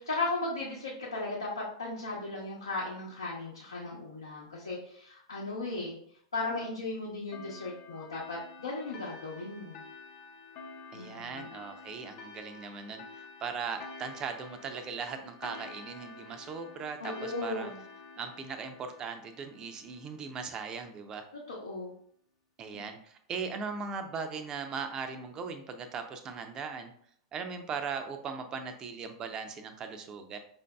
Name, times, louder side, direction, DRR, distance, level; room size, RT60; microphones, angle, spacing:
voice 1, 0.0-6.0 6.3-9.8 10.9-11.5 17.0-17.8 21.5-21.9 22.7-22.9, left 3 dB, 80° left, -6 dB, 0.8 m, -36 dB
sound 1, 7.3-20.4, left 4 dB, 50° left, 0.6 m, -49 dB
voice 2, 10.9-17.7 18.2-21.2 22.6-26.9 27.3-30.4, right 5 dB, 30° right, 7 dB, 0.5 m, -39 dB
5.0 x 2.6 x 2.2 m, 0.64 s
figure-of-eight pair, 95°, 2 cm